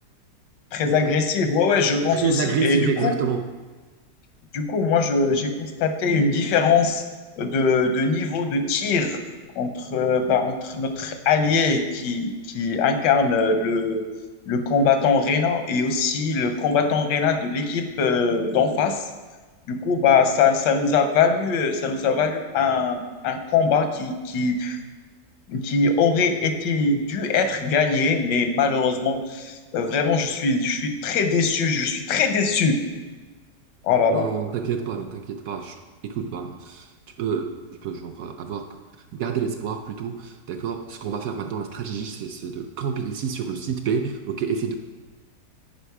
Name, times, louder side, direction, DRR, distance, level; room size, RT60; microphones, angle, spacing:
voice 1, 0.7-3.1 4.5-7.1 7.4-9.2 9.6-14.1 14.5-19.0 19.7-24.8 25.5-32.8 33.8-34.3, left 5 dB, 90° left, 7 dB, 1.4 m, -22 dB
voice 2, 2.1-3.4 34.1-36.9 37.2-38.8 39.1-44.8, right 6 dB, 70° right, 6 dB, 0.9 m, -28 dB
9.1 x 5.1 x 4.7 m, 1.3 s
omnidirectional pair, 1.8 m